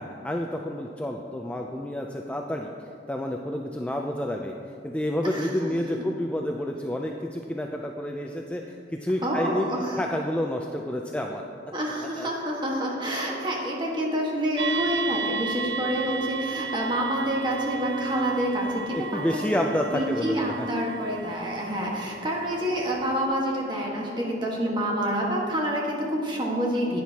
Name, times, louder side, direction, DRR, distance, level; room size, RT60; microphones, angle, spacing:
voice 1, 0.0-2.7 3.1-4.6 4.8-9.7 10.0-11.4 12.0-12.3 18.9-20.7, left 1 dB, 5° left, 1 dB, 0.3 m, -29 dB
voice 2, 9.2-10.0 11.7-19.5 19.9-27.0, equal, 25° right, -2 dB, 1.4 m, -27 dB
sound 1, 14.6-23.3, right 5 dB, 75° right, 0.5 m, -35 dB
10.5 x 9.4 x 2.8 m, 2.7 s
head